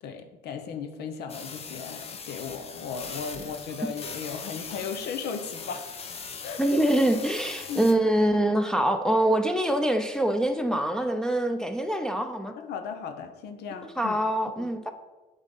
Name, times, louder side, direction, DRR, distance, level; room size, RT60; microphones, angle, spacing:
voice 1, 0.0-5.9 6.4-6.8 7.7-7.8 12.5-14.2 14.6-14.7, left 6 dB, 75° left, 7 dB, 0.9 m, -36 dB
sound 1, 1.3-7.9, left 5 dB, 35° left, 0.8 m, -40 dB
voice 2, 6.6-12.5 14.0-14.9, right 1 dB, 5° left, 4 dB, 0.6 m, -24 dB
8.1 x 3.6 x 5.3 m, 1.2 s
cardioid pair, 110°, 17 cm